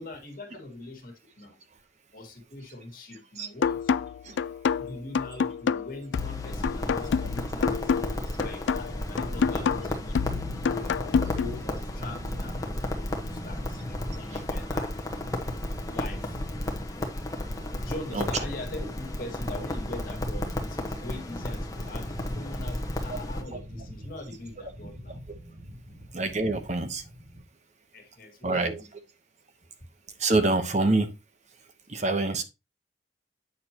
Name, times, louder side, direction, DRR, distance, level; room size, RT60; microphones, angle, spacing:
voice 1, 0.0-1.6 2.1-3.9 4.8-10.6 11.1-13.8 14.2-14.9 15.9-16.4 17.8-25.2 25.9-26.1 27.9-28.9, left 2 dB, 50° left, 2.0 m, -42 dB
voice 2, 3.1-3.5 4.2-4.4 14.3-14.4 18.1-18.4 21.0-21.1 23.5-23.6 26.1-27.0 28.4-28.8 30.2-31.1 31.9-32.4, right 2 dB, 40° right, 1.0 m, -26 dB
sound 1, 3.6-11.6, left 6 dB, 85° left, 0.3 m, -28 dB
Crackle, 6.1-23.4, left 1 dB, 20° left, 1.2 m, -33 dB
sound 2, 8.7-27.4, equal, 60° right, 4.0 m, -43 dB
8.5 x 6.7 x 2.9 m
head